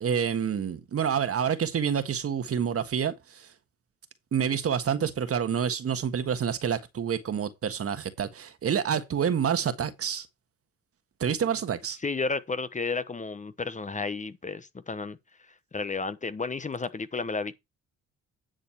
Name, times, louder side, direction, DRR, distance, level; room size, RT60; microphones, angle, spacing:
voice 1, 0.0-3.5 4.3-10.3 11.2-12.0, right 7 dB, 50° right, 1.4 m, -28 dB
voice 2, 12.0-15.2 15.7-17.5, left 4 dB, 25° left, 1.0 m, -32 dB
10.0 x 6.6 x 4.4 m
cardioid pair, 90°, 30 cm